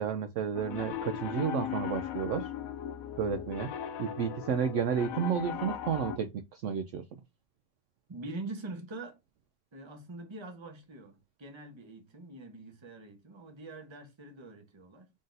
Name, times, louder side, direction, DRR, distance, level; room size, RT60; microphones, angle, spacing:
voice 1, 0.0-2.5 3.2-3.7 4.0-7.0, right 7 dB, 80° right, 0.6 m, -31 dB
Piano, 0.5-6.2, left 9 dB, 70° left, 0.9 m, -38 dB
voice 2, 8.1-9.2 9.7-15.1, right 2 dB, 25° right, 0.6 m, -44 dB
3.9 x 3.7 x 2.5 m
omnidirectional pair, 1.8 m